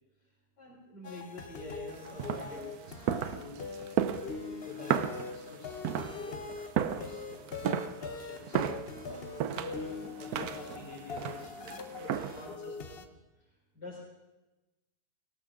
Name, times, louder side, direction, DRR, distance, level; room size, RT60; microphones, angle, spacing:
voice 1, 0.6-2.6 3.0-3.6 4.6-6.4 6.7-7.6 7.8-8.6 9.1-13.1 13.4-13.5 13.7-14.0, left 2 dB, 90° left, -7 dB, 4.5 m, -48 dB
sound 1, 1.0-13.0, left 4 dB, 40° left, 1.0 m, -42 dB
sound 2, 1.9-12.6, right 9 dB, 70° right, 1.1 m, -35 dB
19.0 x 18.0 x 3.7 m, 1.1 s
omnidirectional pair, 1.8 m